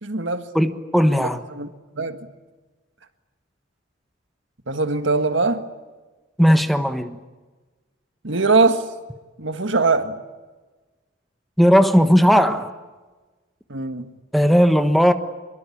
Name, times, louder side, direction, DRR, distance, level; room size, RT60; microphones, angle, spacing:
voice 1, 0.0-0.5 1.1-1.7 2.0-2.2 4.7-5.7 8.2-8.9 9.4-10.2 13.7-14.1, right 3 dB, 70° right, 1.8 m, -21 dB
voice 2, 0.5-1.4 6.4-7.2 11.6-12.7 14.3-15.1, equal, ahead, 1.2 m, -16 dB
25.5 x 22.5 x 8.7 m
head